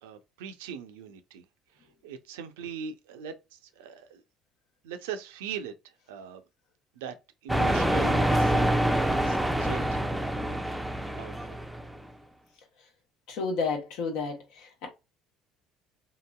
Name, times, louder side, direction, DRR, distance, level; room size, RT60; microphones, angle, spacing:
voice 1, 0.0-1.4 2.0-4.2 4.8-5.7 6.1-6.4 7.0-7.1 7.4-10.2 10.4-10.6 11.2-11.5, right 7 dB, 85° right, 0.4 m, -40 dB
sound 1, 7.5-12.0, right 1 dB, 5° right, 0.4 m, -26 dB
voice 2, 13.3-14.9, left 4 dB, 75° left, 0.9 m, -31 dB
2.9 x 2.6 x 2.2 m
supercardioid pair, 75°, 0 cm